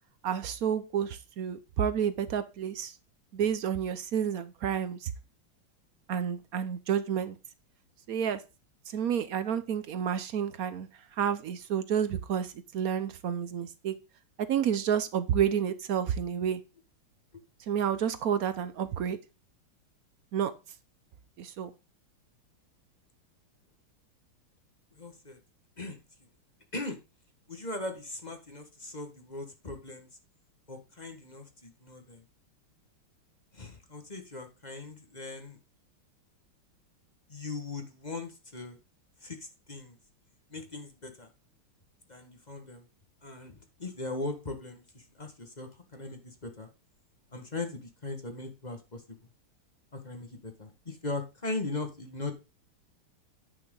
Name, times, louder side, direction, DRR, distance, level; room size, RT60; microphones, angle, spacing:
voice 1, 0.2-2.9 3.3-5.1 6.1-7.4 8.1-8.4 8.9-13.9 14.4-16.6 17.7-19.2 20.3-20.5 21.4-21.7, right 8 dB, 65° right, 0.9 m, -30 dB
voice 2, 25.0-25.4 25.8-26.0 26.7-27.0 27.5-30.1 30.7-32.2 33.5-35.6 37.3-38.8 39.2-39.4 39.7-40.0 40.5-41.3 42.1-42.8 43.2-46.7 47.3-49.3 49.9-52.3, left 2 dB, 25° left, 1.4 m, -39 dB
9.9 x 6.0 x 3.8 m
omnidirectional pair, 2.3 m